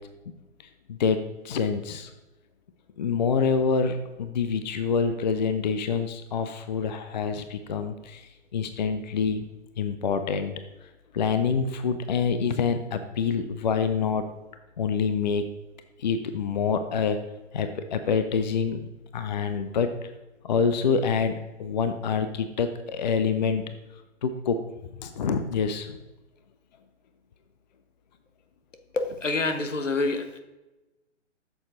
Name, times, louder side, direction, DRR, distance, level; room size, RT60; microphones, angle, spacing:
voice 1, 0.9-2.1 3.0-9.5 9.8-10.5 11.1-14.2 14.8-15.4 16.0-17.2 17.5-18.8 19.1-19.9 20.4-21.3 21.6-23.6 24.2-24.6 24.8-26.0, left 6 dB, 35° left, 9 dB, 0.6 m, -26 dB
voice 2, 28.9-30.4, left 3 dB, 80° left, 7 dB, 1.2 m, -27 dB
8.6 x 6.9 x 3.8 m, 1.1 s
figure-of-eight pair, 125°, 37 cm